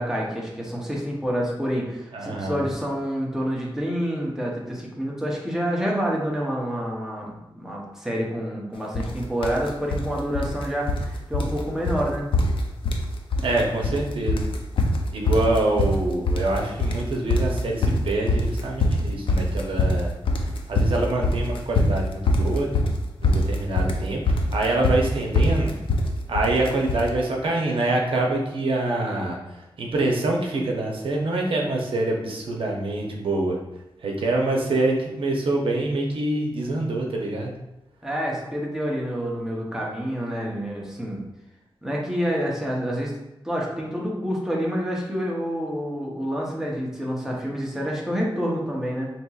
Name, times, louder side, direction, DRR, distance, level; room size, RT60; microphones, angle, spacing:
voice 1, 0.0-12.3 38.0-41.2 41.8-43.1 43.4-49.1, equal, 5° right, -3 dB, 0.7 m, -28 dB
voice 2, 2.1-2.6 13.4-14.5 15.1-20.1 20.4-22.8 23.2-25.7 26.3-33.6 34.0-37.5, right 2 dB, 75° right, 0 dB, 0.7 m, -25 dB
sound 1, 8.9-9.1 9.4-10.1 10.3-11.1 11.3-11.6 11.9-12.0 12.3-13.1 13.3-14.0 14.3-27.1, left 2 dB, 75° left, 0.4 m, -23 dB
4.2 x 2.9 x 2.3 m, 0.91 s
wide cardioid pair, 170°, 9 cm